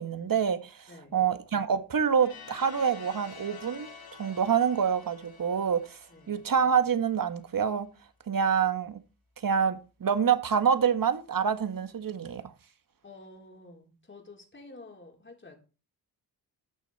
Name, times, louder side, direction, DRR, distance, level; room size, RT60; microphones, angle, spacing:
voice 1, 0.0-3.9 4.2-6.0 6.3-7.9 8.3-9.0 9.4-12.4, right 7 dB, 55° right, 1.6 m, -26 dB
voice 2, 0.9-1.2 6.1-6.4 13.0-15.6, left 2 dB, 30° left, 3.9 m, -50 dB
sound 1, 2.2-7.0, left 5 dB, 60° left, 2.5 m, -49 dB
14.0 x 9.1 x 4.2 m
cardioid pair, 80°, 41 cm